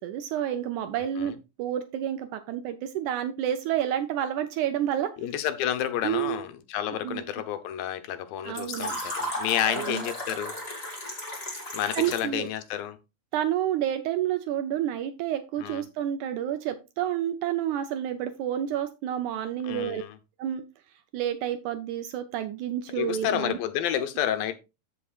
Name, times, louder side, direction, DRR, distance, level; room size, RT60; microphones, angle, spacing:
voice 1, 0.0-1.3 1.6-5.1 6.0-6.4 7.0-7.2 8.5-9.0 9.6-10.0 11.9-12.5 13.3-20.0 20.4-20.6 21.1-23.6 23.9-24.0, right 11 dB, 75° right, 1.9 m, -29 dB
voice 2, 5.2-10.5 11.7-13.0 15.6-15.8 19.6-20.2 23.0-24.6, left 11 dB, 85° left, 2.6 m, -30 dB
Fill (with liquid), 8.6-12.4, left 1 dB, 20° left, 2.2 m, -34 dB
14.0 x 5.5 x 2.4 m
omnidirectional pair, 4.0 m